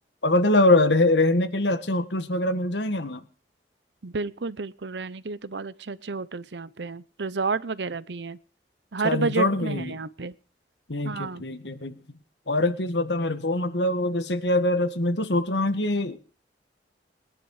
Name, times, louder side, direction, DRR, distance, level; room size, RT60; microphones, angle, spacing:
voice 1, 0.2-3.2 9.0-9.9 10.9-11.9 12.5-16.2, left 2 dB, 75° left, 10 dB, 1.6 m, -23 dB
voice 2, 4.0-8.4 8.9-10.4 11.0-11.4, right 4 dB, 75° right, 18 dB, 0.7 m, -31 dB
21.0 x 10.5 x 4.9 m, 0.38 s
head